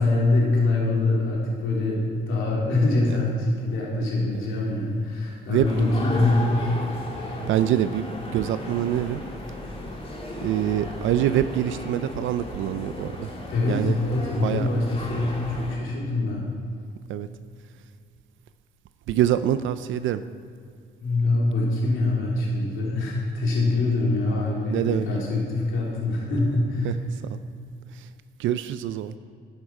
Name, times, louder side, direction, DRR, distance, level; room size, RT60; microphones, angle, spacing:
voice 1, 0.0-6.6 13.5-16.4 21.0-27.0, left 2 dB, 80° left, -4 dB, 3.3 m, -24 dB
sound 1, 5.6-15.8, left 2 dB, 30° left, 2.4 m, -35 dB
voice 2, 7.5-9.2 10.4-13.3 13.7-13.9 14.4-14.7 17.1-17.3 19.1-20.2 24.7-25.1 26.8-26.9 27.3-27.4 28.4-29.1, right 11 dB, 80° right, 12 dB, 0.5 m, -25 dB
13.5 x 8.9 x 4.8 m, 2.3 s
cardioid pair, 90°, 20 cm